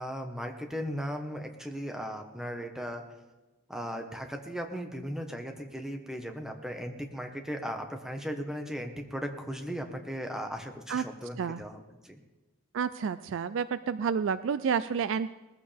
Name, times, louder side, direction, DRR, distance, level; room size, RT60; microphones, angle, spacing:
voice 1, 0.0-3.0 3.7-12.2, equal, ahead, 4 dB, 1.2 m, -37 dB
voice 2, 12.7-15.3, right 6 dB, 60° right, 14 dB, 0.3 m, -30 dB
20.0 x 14.5 x 3.4 m, 1.2 s
head